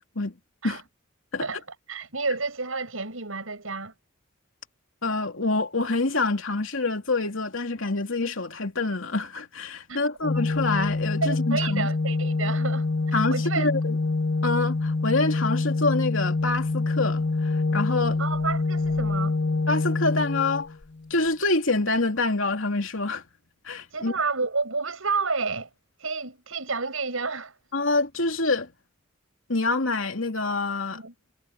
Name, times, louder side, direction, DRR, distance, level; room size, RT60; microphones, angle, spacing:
voice 1, 1.9-3.9 9.9-10.0 11.2-13.7 18.2-19.3 23.9-25.7 26.0-27.5 30.9-31.1, right 4 dB, 85° right, 5.8 m, -30 dB
voice 2, 5.0-11.9 13.1-14.0 14.4-18.2 19.7-20.7 21.1-23.2 23.6-24.1 27.7-28.7 29.5-31.0, left 3 dB, 75° left, 2.9 m, -26 dB
Organ, 10.2-21.1, left 3 dB, 55° left, 0.7 m, -26 dB
head